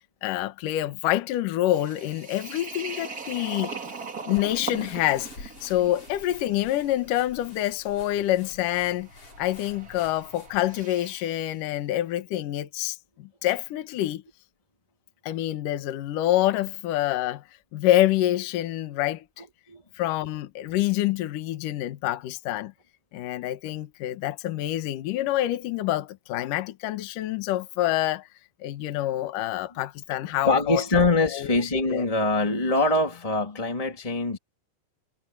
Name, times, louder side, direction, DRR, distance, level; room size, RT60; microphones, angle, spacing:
voice 1, 0.2-3.7 4.3-9.1 9.4-14.2 15.2-17.4 17.7-19.2 20.0-22.7 23.1-28.3 28.6-31.0 31.3-31.5 31.9-32.0, left 14 dB, 65° left, 2.6 m, -27 dB
sound 1, 1.7-11.5, right 4 dB, 30° right, 1.9 m, -41 dB
sound 2, 4.4-10.9, left 3 dB, 35° left, 6.2 m, -48 dB
voice 2, 30.4-34.4, left 2 dB, 15° left, 1.3 m, -23 dB
omnidirectional pair, 4.6 m